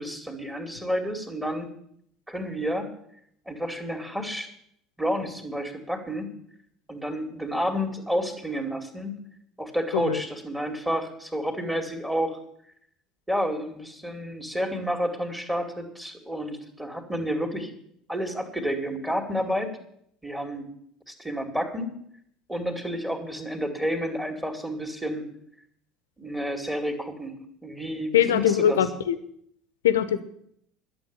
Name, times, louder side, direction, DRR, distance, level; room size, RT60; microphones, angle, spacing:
voice 1, 0.0-1.7 2.3-2.9 3.5-4.5 5.0-6.3 6.9-9.1 9.6-12.4 13.3-17.7 18.1-19.7 20.2-20.7 21.1-21.9 22.5-25.3 26.2-27.3 27.6-28.9, equal, 10° right, 4 dB, 2.6 m, -30 dB
voice 2, 28.1-29.2 29.8-30.2, left 10 dB, 70° left, 13 dB, 0.9 m, -22 dB
11.5 x 7.1 x 9.9 m, 0.69 s
figure-of-eight pair, 65°, 0 cm